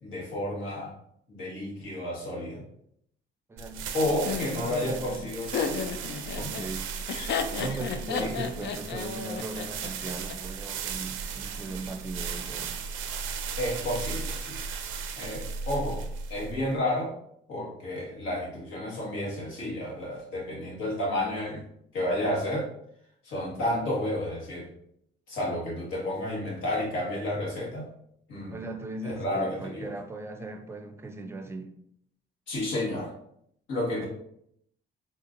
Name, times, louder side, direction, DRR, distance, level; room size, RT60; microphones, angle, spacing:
voice 1, 0.0-0.9 1.3-2.6 3.9-5.5 6.4-6.5 8.2-8.3 13.6-14.6 15.2-16.0 16.3-17.1 17.5-21.6 21.9-22.7 23.2-24.7 25.3-27.8 28.3-28.5 29.0-29.9 32.5-33.1 33.7-34.1, left 1 dB, 80° left, 1.5 m, -31 dB
voice 2, 3.5-5.2 6.4-6.9 7.6-12.8 28.5-31.7, right 2 dB, 15° right, 0.4 m, -38 dB
sound 1, 3.6-16.7, right 6 dB, 85° right, 0.5 m, -36 dB
Laughter, 4.3-10.3, left 6 dB, 60° left, 0.4 m, -33 dB
4.3 x 2.5 x 2.5 m
cardioid pair, 90°, 20 cm